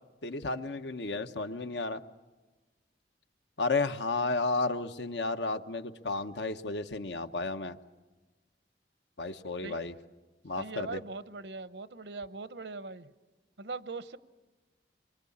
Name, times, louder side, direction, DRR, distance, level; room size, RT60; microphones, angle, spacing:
voice 1, 0.2-2.0 3.6-7.8 9.2-9.9 10.4-11.0, left 3 dB, 90° left, 9 dB, 1.1 m, -32 dB
voice 2, 10.6-13.1 13.6-14.2, right 3 dB, 85° right, 13 dB, 0.9 m, -40 dB
26.0 x 23.0 x 8.6 m, 1.2 s
head